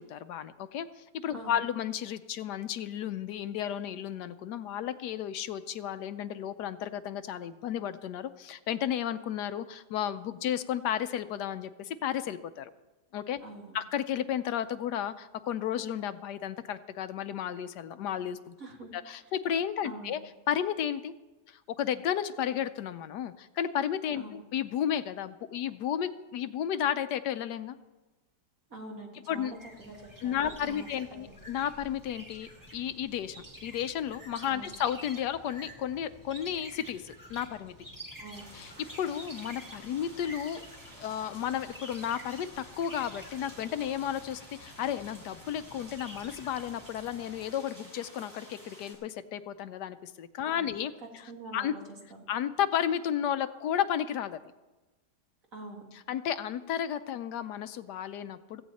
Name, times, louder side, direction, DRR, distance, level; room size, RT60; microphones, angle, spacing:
voice 1, 0.0-12.7 13.1-13.4 13.7-18.5 18.9-20.2 20.5-21.1 21.5-27.8 29.3-29.5 30.2-37.7 38.5-38.7 39.0-40.6 41.0-51.7 52.3-54.4 55.9-58.6, left 9 dB, 80° left, 12 dB, 1.2 m, -33 dB
voice 2, 13.4-13.7 18.6-19.0 19.8-20.1 24.1-24.4 28.7-31.3 34.5-34.8 38.2-38.5 50.4-50.8 51.3-51.8 52.1-52.3 55.5-55.8, right 2 dB, 50° right, 0 dB, 2.6 m, -45 dB
sound 1, 29.5-47.6, equal, 10° right, 1.9 m, -50 dB
sound 2, 38.3-48.9, right 1 dB, 35° right, 6.4 m, -51 dB
16.0 x 15.0 x 4.2 m, 1.1 s
omnidirectional pair, 1.8 m